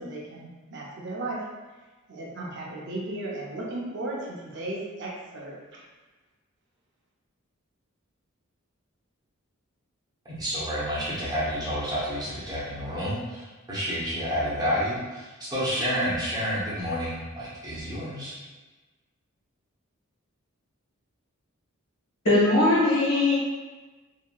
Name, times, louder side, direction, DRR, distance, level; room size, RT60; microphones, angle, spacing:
voice 1, 0.0-1.4 2.1-5.8, right 2 dB, 55° right, -3 dB, 0.6 m, -35 dB
voice 2, 10.2-18.4, equal, 20° right, -8 dB, 0.8 m, -29 dB
voice 3, 22.2-23.4, left 2 dB, 75° left, -8 dB, 1.4 m, -20 dB
2.8 x 2.7 x 2.2 m, 1.2 s
head